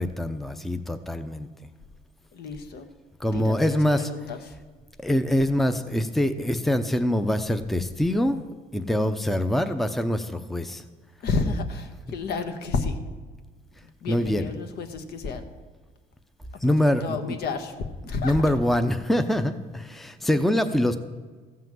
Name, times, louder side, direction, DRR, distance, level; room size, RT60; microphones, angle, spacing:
voice 1, 0.0-1.5 3.2-4.1 5.0-8.4 8.7-10.8 14.1-14.5 16.6-17.2 18.2-21.0, left 1 dB, ahead, 9 dB, 0.6 m, -24 dB
voice 2, 2.3-2.9 3.3-4.5 11.2-13.0 14.0-15.5 17.0-17.7 18.0-18.4, left 4 dB, 70° left, 7 dB, 1.4 m, -30 dB
14.5 x 5.7 x 7.7 m, 1.4 s
cardioid pair, 110°, 17 cm